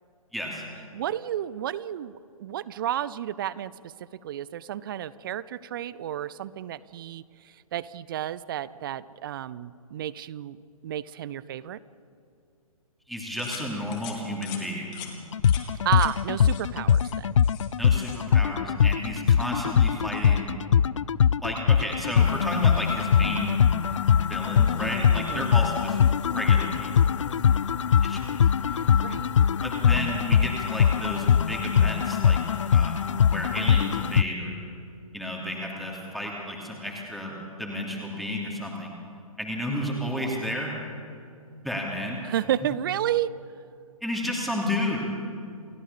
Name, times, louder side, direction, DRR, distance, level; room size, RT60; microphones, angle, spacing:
voice 1, 0.3-0.6 13.1-14.9 17.8-20.5 21.4-23.6 24.3-26.0 26.3-27.2 28.0-28.4 29.6-32.4 32.7-34.6 35.1-39.0 39.4-40.7 41.6-42.2 44.0-45.3, left 1 dB, ahead, -2 dB, 3.0 m, -32 dB
voice 2, 0.9-3.9 4.2-10.6 10.8-11.8 15.8-17.3 24.8-25.5 28.7-29.3 42.2-43.3, right 11 dB, 35° right, 19 dB, 0.7 m, -32 dB
sound 1, 13.4-13.6 13.9-14.1 14.4-14.6 14.9-15.1 15.4-15.6 15.9-16.1 16.4-16.6 16.9-17.7 17.9-18.2, left 11 dB, 25° left, 2.7 m, -42 dB
sound 2, 15.3-34.2, left 8 dB, 55° left, 0.5 m, -22 dB
29.0 x 16.5 x 7.1 m, 2.4 s
figure-of-eight pair, 130°, 19 cm